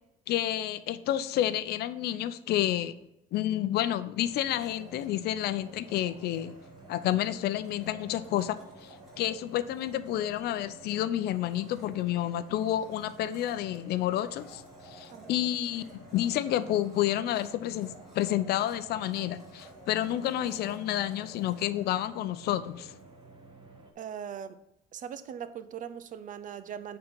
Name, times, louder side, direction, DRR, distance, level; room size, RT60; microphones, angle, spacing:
voice 1, 0.3-2.9 3.3-6.5 6.9-23.0, left 12 dB, 75° left, 13 dB, 0.5 m, -30 dB
sound 1, 4.2-23.9, right 2 dB, 30° right, 1.2 m, -53 dB
Domestic sounds home sounds, 4.3-23.1, equal, ahead, 3.0 m, -55 dB
voice 2, 24.0-24.6 24.9-27.0, right 8 dB, 50° right, 13 dB, 0.6 m, -40 dB
8.8 x 3.9 x 5.2 m, 0.83 s
cardioid pair, 110°, 17 cm